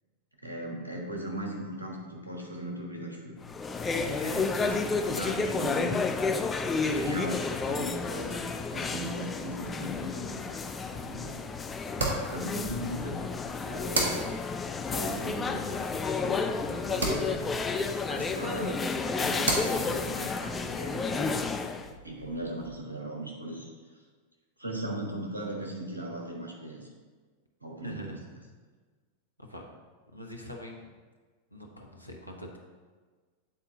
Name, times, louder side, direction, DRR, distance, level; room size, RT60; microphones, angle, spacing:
voice 1, 0.4-3.4 3.9-6.0 6.8-10.4 10.9-11.5 12.3-13.3 13.6-14.4 14.8-17.5 18.1-18.8 19.1-21.4 22.0-23.7 24.6-26.9 27.6-28.4, right 1 dB, 85° right, -2 dB, 1.4 m, -38 dB
sound 1, 3.4-21.9, left 4 dB, 15° left, 0.4 m, -31 dB
sound 2, 9.9-22.7, right 2 dB, 65° right, 1.4 m, -38 dB
voice 2, 27.8-28.2 29.4-29.6 30.1-30.9 31.5-32.6, left 1 dB, 90° left, 1 dB, 0.9 m, -43 dB
8.8 x 4.2 x 3.9 m, 1.5 s
figure-of-eight pair, 90°, 0 cm